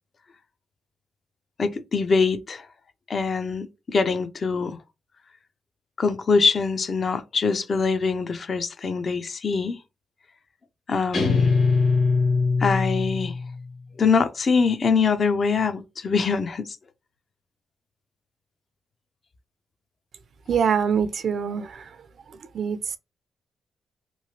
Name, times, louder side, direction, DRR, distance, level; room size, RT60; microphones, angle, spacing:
voice 1, 1.6-2.7 3.1-4.8 6.0-9.8 10.9-11.5 12.6-13.4 14.0-16.8, left 4 dB, 45° left, 0.4 m, -23 dB
Guitar, 11.1-13.7, left 4 dB, 65° left, 1.3 m, -22 dB
voice 2, 20.5-22.0 22.3-23.0, right 7 dB, 60° right, 0.4 m, -25 dB
3.0 x 2.4 x 2.7 m
cardioid pair, 85°, 0 cm